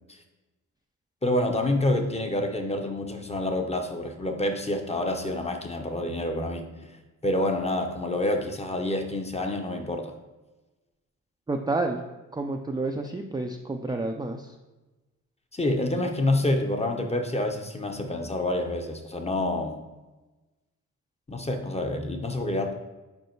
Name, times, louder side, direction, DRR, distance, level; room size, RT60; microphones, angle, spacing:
voice 1, 1.2-6.7 7.2-10.1 15.5-19.8 21.3-22.7, left 1 dB, 20° left, 4 dB, 0.7 m, -27 dB
voice 2, 11.5-12.0 12.3-14.6, right 2 dB, 15° right, 2 dB, 0.4 m, -29 dB
5.3 x 4.6 x 4.5 m, 1.1 s
cardioid pair, 110°, 34 cm